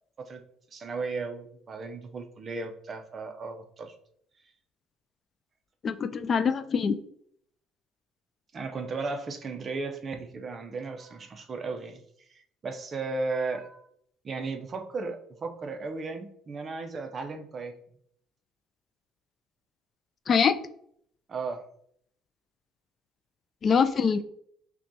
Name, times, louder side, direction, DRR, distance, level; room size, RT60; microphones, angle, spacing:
voice 1, 0.7-3.9 8.5-13.9 14.2-17.7 21.3-21.6, right 3 dB, 35° right, 6 dB, 0.6 m, -35 dB
voice 2, 5.8-7.0 20.3-20.6 23.6-24.2, left 6 dB, 40° left, 11 dB, 0.3 m, -24 dB
5.8 x 2.3 x 2.7 m, 0.67 s
cardioid pair, 105°, 0 cm